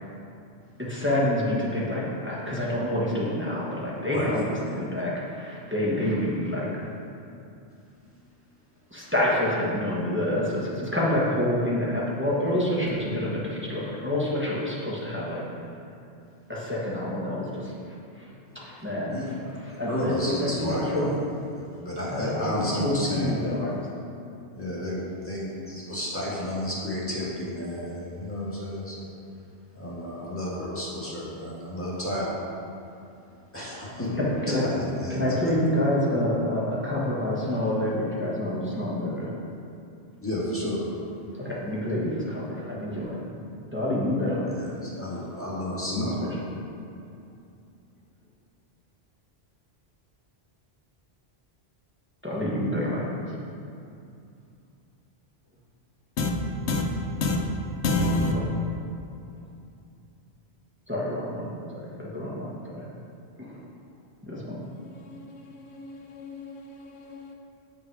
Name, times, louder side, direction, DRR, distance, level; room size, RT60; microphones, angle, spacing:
voice 1, 0.8-6.8 8.9-15.5 16.5-17.7 18.1-18.3 18.5-21.3 22.1-23.9 34.1-34.7 35.1-39.3 41.4-43.2 43.7-44.7 45.9-46.6 52.2-53.4 58.3-58.7 60.9-62.9 63.4-63.6 64.2-64.6, left 1 dB, 10° right, 1.3 m, -28 dB
voice 2, 19.9-20.9 21.8-23.4 24.5-29.0 29.7-32.3 33.5-34.2 34.6-35.2 40.2-40.8 44.5-46.1, left 1 dB, 10° left, 1.7 m, -31 dB
voice 3, 57.8-58.3 65.1-65.2 65.6-67.3, left 3 dB, 85° left, 1.1 m, -28 dB
7.6 x 5.4 x 4.7 m
omnidirectional pair, 1.1 m